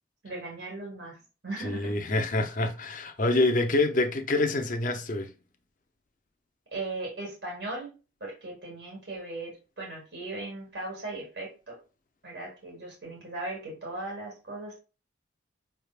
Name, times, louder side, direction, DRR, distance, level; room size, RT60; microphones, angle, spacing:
voice 1, 0.2-1.2 1.4-2.0 6.7-7.9 8.2-11.8 12.2-14.8, right 2 dB, 60° right, 1.7 m, -38 dB
voice 2, 1.6-5.3, left 2 dB, 45° left, 0.6 m, -26 dB
5.4 x 3.3 x 2.4 m
head